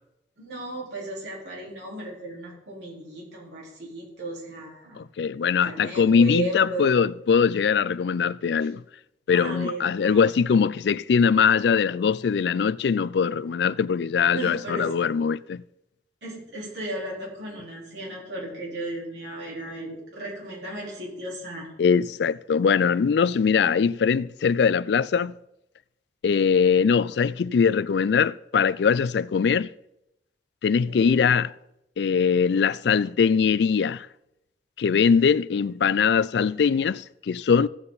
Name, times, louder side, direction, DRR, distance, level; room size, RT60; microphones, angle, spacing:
voice 1, 0.4-5.0 5.4-7.0 8.6-8.7 9.3-10.2 14.3-14.9 16.2-21.7 30.9-31.3, right 1 dB, 80° right, 4.1 m, -35 dB
voice 2, 5.0-8.8 9.3-15.6 21.8-25.3 26.2-29.7 30.6-31.5 32.0-34.1 34.8-37.7, left 6 dB, 70° left, 0.4 m, -22 dB
15.0 x 7.8 x 4.0 m
head